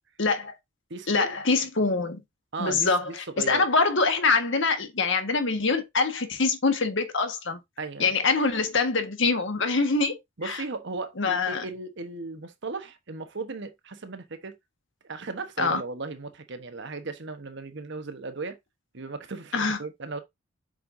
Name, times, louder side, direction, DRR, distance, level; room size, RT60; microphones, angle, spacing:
voice 1, 0.2-0.5 1.1-2.2 2.6-7.6 8.0-10.1 10.4-10.6 11.2-11.6 15.6-15.8 19.5-19.8, left 4 dB, 60° left, 1.5 m, -24 dB
voice 2, 0.9-1.4 2.5-3.6 7.8-8.1 10.4-14.6 15.1-18.6 18.9-20.2, right 3 dB, 55° right, 1.1 m, -36 dB
7.6 x 5.5 x 2.6 m
head